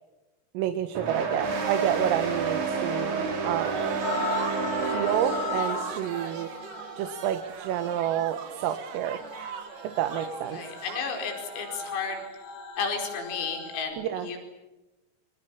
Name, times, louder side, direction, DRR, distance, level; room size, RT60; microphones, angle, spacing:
voice 1, 0.6-3.9 4.8-6.5 7.0-9.2 9.8-10.6 14.0-14.3, right 11 dB, 80° right, 9 dB, 4.0 m, -29 dB
sound 1, 0.9-6.0, right 4 dB, 40° right, 4.3 m, -30 dB
sound 2, 3.5-12.3, right 7 dB, 55° right, 2.6 m, -39 dB
sound 3, 4.0-13.8, left 4 dB, 60° left, 7.0 m, -38 dB
voice 2, 10.5-12.2 12.8-14.4, left 5 dB, 85° left, 3 dB, 7.5 m, -32 dB
30.0 x 27.0 x 7.2 m, 1.0 s
omnidirectional pair, 6.0 m